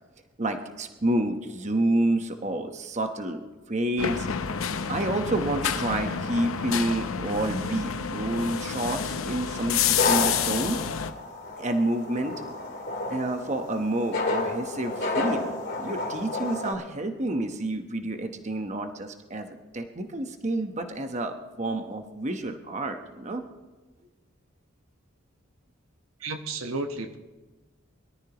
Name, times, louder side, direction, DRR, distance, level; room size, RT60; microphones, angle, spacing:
voice 1, 0.4-3.4 3.7-4.3 4.9-10.8 11.6-12.3 13.1-23.4, right 1 dB, 35° right, 6 dB, 1.0 m, -29 dB
sound 1, 4.0-11.1, left 7 dB, 80° left, 0.7 m, -29 dB
sound 2, 9.8-16.7, left 2 dB, 55° left, 2.4 m, -31 dB
voice 2, 26.2-27.2, right 3 dB, 85° right, 6 dB, 1.1 m, -32 dB
22.5 x 13.0 x 3.0 m, 1.2 s
head